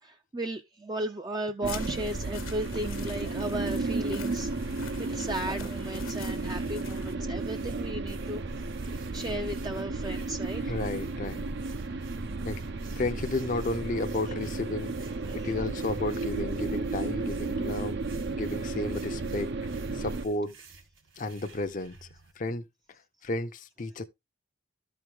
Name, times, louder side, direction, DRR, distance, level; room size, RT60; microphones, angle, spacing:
voice 1, 0.0-8.4 8.8-10.6 15.3-15.5, right 1 dB, 20° right, 0.5 m, -35 dB
sound 1, 1.6-7.1, left 5 dB, 75° left, 1.2 m, -44 dB
sound 2, 1.6-20.3, right 3 dB, 55° right, 0.6 m, -33 dB
sound 3, 3.7-22.3, right 4 dB, 70° right, 2.9 m, -54 dB
voice 2, 10.6-11.6 12.4-12.6 13.0-14.9 15.3-18.0 18.3-19.5 19.9-20.6 21.2-22.0 22.4-24.0, left 2 dB, 40° left, 0.6 m, -33 dB
13.5 x 4.6 x 3.5 m
head